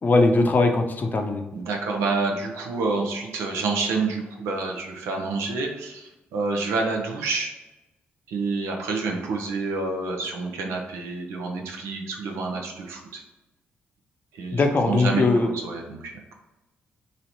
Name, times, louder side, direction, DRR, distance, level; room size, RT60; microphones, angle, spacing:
voice 1, 0.0-1.4 14.5-15.5, left 3 dB, 40° left, 4 dB, 0.6 m, -20 dB
voice 2, 1.5-7.5 8.3-13.2 14.3-16.4, right 3 dB, 80° right, 2 dB, 0.7 m, -28 dB
3.0 x 2.8 x 4.2 m, 1.0 s
supercardioid pair, 55°, 5 cm